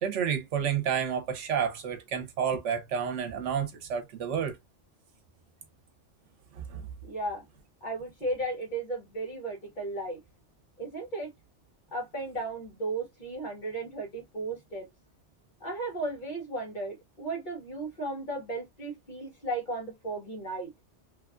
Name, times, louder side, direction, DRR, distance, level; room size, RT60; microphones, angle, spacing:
voice 1, 0.0-4.6 6.6-6.9, right 8 dB, 85° right, 1.1 m, -30 dB
voice 2, 7.0-7.4 7.8-10.2 10.8-11.3 11.9-14.9 15.6-20.7, right 2 dB, 45° left, 1.3 m, -35 dB
3.2 x 2.3 x 2.3 m
omnidirectional pair, 1.2 m